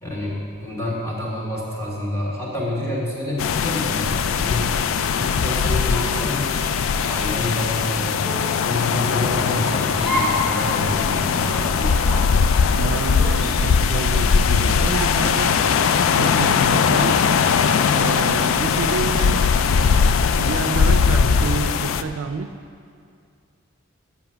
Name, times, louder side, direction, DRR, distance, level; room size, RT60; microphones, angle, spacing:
voice 1, 0.0-4.7 5.1-6.8 7.0-8.2 8.6-11.7 21.1-21.3, left 1 dB, 15° left, -5 dB, 1.5 m, -28 dB
sound 1, 3.4-22.0, left 6 dB, 75° left, 0.3 m, -20 dB
sound 2, 5.9-6.3 7.0-7.2 8.2-8.6 10.0-10.5 10.8-10.9 11.8-12.2 13.1-14.0 14.9-15.3, left 1 dB, 5° right, 1.5 m, -29 dB
voice 2, 12.7-15.5 16.2-17.2 17.9-19.4 20.4-22.5, right 5 dB, 80° right, 9 dB, 0.4 m, -28 dB
7.7 x 5.8 x 5.7 m, 2.3 s
head